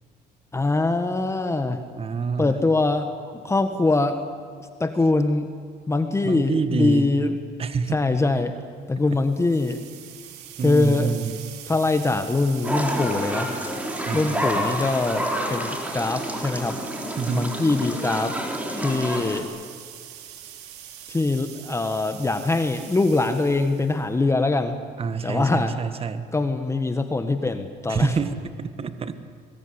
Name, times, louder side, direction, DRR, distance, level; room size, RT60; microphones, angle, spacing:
voice 1, 0.5-1.8 2.4-4.2 4.8-5.5 5.9-7.4 7.9-8.5 8.9-9.8 10.6-11.2 11.7-13.5 14.1-16.8 17.3-18.4 18.8-19.5 21.1-24.8 25.2-25.7 26.3-28.1, left 3 dB, 15° left, 8 dB, 1.5 m, -23 dB
voice 2, 2.0-2.5 6.2-7.1 7.6-8.1 10.6-11.4 14.0-14.8 17.2-17.5 25.0-26.3 27.9-29.2, right 5 dB, 35° right, 11 dB, 1.6 m, -27 dB
sound 1, 9.1-24.1, right 11 dB, 85° right, 2.9 m, -42 dB
sound 2, 12.6-19.4, equal, 10° right, 4.0 m, -29 dB
24.5 x 21.5 x 9.9 m, 2.1 s
cardioid pair, 110°, 17 cm